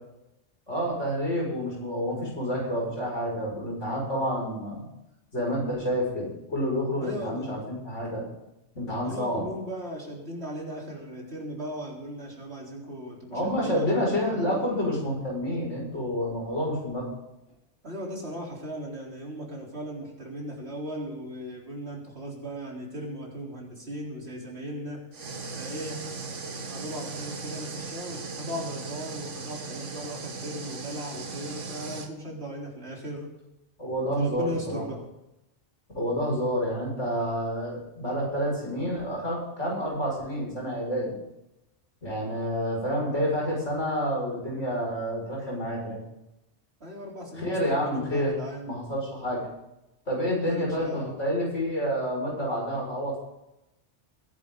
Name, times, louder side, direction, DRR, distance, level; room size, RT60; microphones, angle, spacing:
voice 1, 0.7-4.8 5.3-8.2 8.7-9.5 13.3-17.1 33.8-34.8 35.9-41.1 42.0-46.0 47.4-48.3 48.6-49.5 50.1-53.2, equal, 75° left, -2 dB, 6.4 m, -29 dB
voice 2, 7.0-7.5 9.0-14.6 17.8-25.0 25.5-26.1 26.6-33.3 34.2-35.0 46.8-48.8 50.5-51.2, equal, 60° right, -3 dB, 4.3 m, -37 dB
sound 1, 25.1-32.1, right 4 dB, 85° right, 1.8 m, -38 dB
21.0 x 11.0 x 3.9 m, 0.89 s
omnidirectional pair, 1.2 m